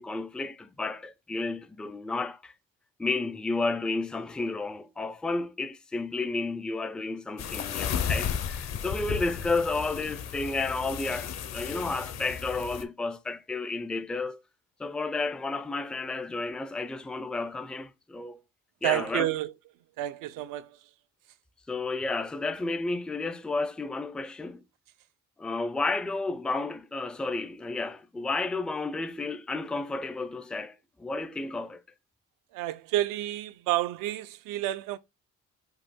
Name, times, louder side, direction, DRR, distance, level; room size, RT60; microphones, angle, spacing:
voice 1, 0.0-2.5 3.0-14.4 14.8-18.4 18.8-19.3 21.7-24.6 25.4-31.8, left 3 dB, 5° left, 0.3 m, -32 dB
sound 1, 7.4-12.8, left 8 dB, 55° left, 0.7 m, -34 dB
voice 2, 18.8-19.5 20.0-20.7 32.5-35.0, right 15 dB, 85° right, 0.5 m, -30 dB
5.3 x 2.6 x 3.6 m
cardioid pair, 120°, 32 cm